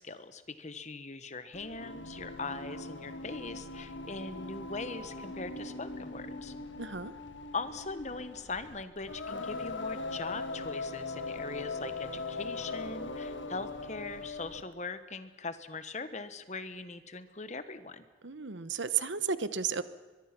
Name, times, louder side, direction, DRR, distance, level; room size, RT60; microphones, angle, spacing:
voice 1, 0.0-6.5 7.5-18.0, left 3 dB, 40° left, 12 dB, 1.2 m, -41 dB
Singing, 1.5-14.7, left 3 dB, 85° left, 1.5 m, -40 dB
voice 2, 6.8-7.1 18.2-19.8, right 6 dB, 80° right, 14 dB, 1.1 m, -33 dB
23.0 x 22.5 x 6.0 m, 1.3 s
head